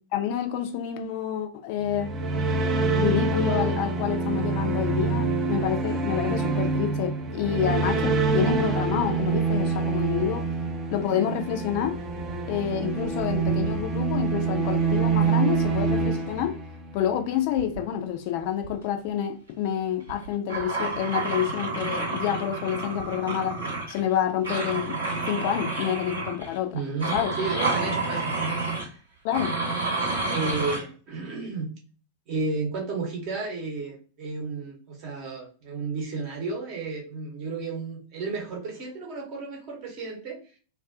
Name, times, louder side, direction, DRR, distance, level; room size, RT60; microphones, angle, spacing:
voice 1, 0.1-2.1 3.0-10.5 10.9-12.0 12.5-16.6 16.9-23.6 23.9-25.0 25.2-26.8 27.1-27.3 29.2-29.5, left 10 dB, 45° left, 0.3 m, -28 dB
sound 1, 1.8-17.0, right 4 dB, 25° right, 0.4 m, -26 dB
sound 2, 11.8-12.7 12.9-14.0 15.3-15.9 17.6-17.8 18.4-18.7 19.1-19.2 20.1-24.1 24.4-26.6 27.0-28.9 29.3-30.8, right 3 dB, 75° right, 1.0 m, -30 dB
voice 2, 26.7-29.0 30.3-31.7 32.3-40.4, right 4 dB, 45° right, 0.8 m, -32 dB
2.4 x 2.2 x 2.3 m
figure-of-eight pair, 90°, 0 cm